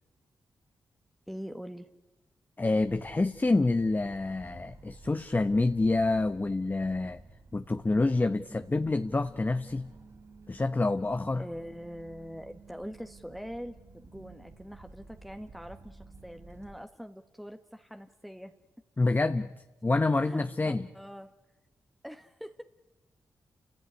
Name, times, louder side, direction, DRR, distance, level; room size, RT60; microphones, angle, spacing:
voice 1, 1.3-2.0 8.5-8.8 11.4-18.5 20.2-21.3 22.0-22.6, equal, ahead, 7 dB, 1.4 m, -43 dB
voice 2, 2.6-7.2 7.5-9.9 10.5-11.4 19.0-19.5 19.8-20.8, left 2 dB, 30° left, 9 dB, 1.1 m, -27 dB
sound 1, 2.8-16.9, right 3 dB, 50° right, 6.2 m, -53 dB
29.5 x 16.5 x 9.7 m, 1.1 s
supercardioid pair, 45°, 7 cm